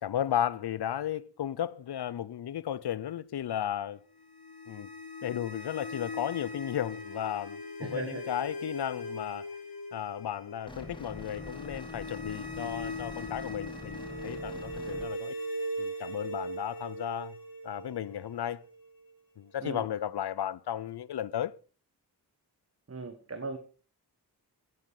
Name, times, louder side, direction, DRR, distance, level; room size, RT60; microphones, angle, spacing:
voice 1, 0.0-4.0 4.7-4.9 5.2-9.5 9.9-15.3 15.8-17.4 17.6-18.6 19.4-21.5, left 10 dB, 75° left, 0.6 m, -34 dB
sound 1, 4.2-19.1, left 1 dB, 60° left, 3.5 m, -40 dB
voice 2, 7.8-8.2 19.6-19.8 22.9-23.6, right 3 dB, 35° right, 1.4 m, -37 dB
sound 2, 10.7-15.1, left 1 dB, 10° left, 2.4 m, -45 dB
9.6 x 9.4 x 4.8 m
cardioid pair, 45°, 40 cm